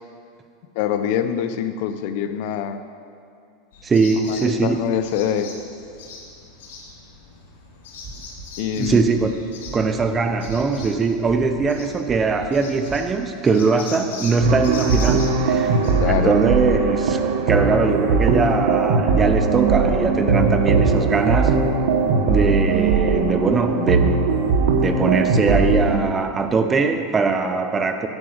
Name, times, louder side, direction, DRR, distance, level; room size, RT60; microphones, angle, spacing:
voice 1, 0.7-2.8 4.3-5.5 8.6-9.0 16.0-16.4, left 9 dB, 60° left, 9 dB, 0.6 m, -24 dB
sound 1, 3.7-15.9, left 3 dB, 85° left, 2.4 m, -40 dB
voice 2, 3.8-4.9 8.7-9.3 9.7-15.8 16.1-21.6 22.2-24.3 24.8-28.1, right 4 dB, 20° right, 7 dB, 0.6 m, -21 dB
sound 2, 8.0-8.5 8.8-9.3 9.6-10.1 10.4-10.9 11.3-11.7 12.1-12.5 12.9-13.1, right 3 dB, 40° right, 2.6 m, -38 dB
sound 3, 14.4-26.0, right 4 dB, 70° right, 1.2 m, -19 dB
9.7 x 6.1 x 7.8 m, 2.4 s
supercardioid pair, 145°, 0 cm